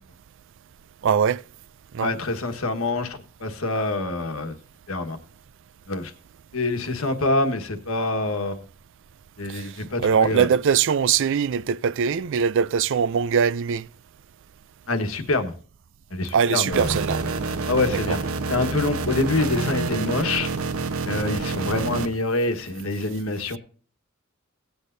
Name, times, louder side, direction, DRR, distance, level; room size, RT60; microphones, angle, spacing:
voice 1, 1.0-1.4 1.9-2.1 9.5-9.7 10.0-13.9 16.3-17.2 17.9-18.2, right 7 dB, 60° right, 0.4 m, -22 dB
voice 2, 2.0-4.6 4.9-5.2 5.9-6.1 6.5-8.6 9.4-10.5 14.9-15.5 16.1-16.9 17.7-18.2 18.5-20.5 21.0-23.6, left 2 dB, 75° left, 1.5 m, -26 dB
sound 1, 16.7-22.1, right 4 dB, 80° right, 1.0 m, -27 dB
18.0 x 8.2 x 2.6 m
head